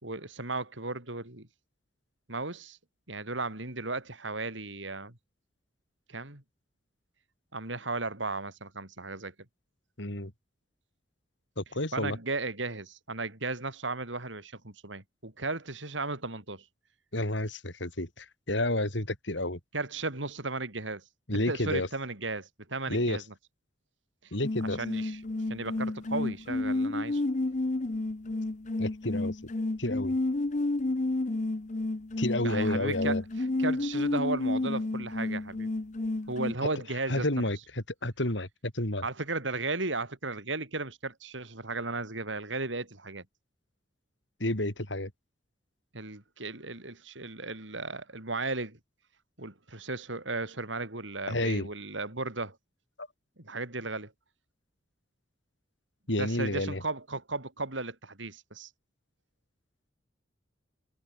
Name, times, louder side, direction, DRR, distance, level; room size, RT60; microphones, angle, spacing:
voice 1, 0.0-1.5 2.3-2.8 3.1-5.2 6.1-6.4 7.5-9.3 11.9-16.6 19.7-21.0 21.3-23.2 24.2-24.3 24.8-25.2 25.5-27.2 32.4-35.7 36.3-37.5 39.0-43.2 45.9-48.8 49.4-52.6 53.4-54.1 56.2-58.7, right 3 dB, 80° right, 4.6 m, -35 dB
voice 2, 10.0-10.3 11.6-12.2 17.1-19.6 21.3-21.9 22.9-23.2 24.3-24.8 28.8-29.4 29.8-30.2 32.2-33.2 36.6-36.7 37.1-39.0 44.4-45.1 51.3-51.7 53.0-53.1 56.1-56.8, left 1 dB, 70° left, 5.2 m, -30 dB
sound 1, 24.4-36.5, left 2 dB, 40° left, 0.7 m, -31 dB
head